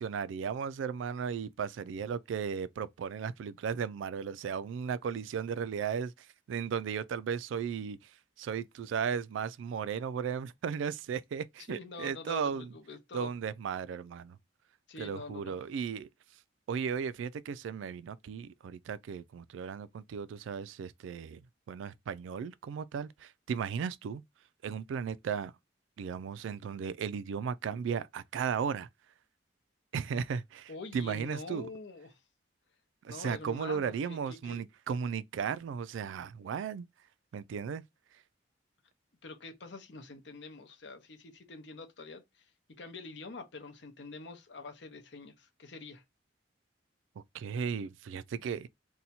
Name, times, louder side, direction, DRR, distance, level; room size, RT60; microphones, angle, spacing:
voice 1, 0.0-8.1 8.4-12.7 13.1-14.4 15.0-16.1 16.7-21.4 21.7-24.2 24.6-25.5 26.0-28.9 29.9-31.7 33.0-36.9 37.3-37.8 47.3-48.7, right 6 dB, 80° right, 0.3 m, -35 dB
voice 2, 11.7-13.3 14.9-15.6 30.7-32.2 33.1-34.6 39.2-42.5 42.8-46.0, left 3 dB, 65° left, 0.7 m, -46 dB
2.7 x 2.2 x 4.1 m
head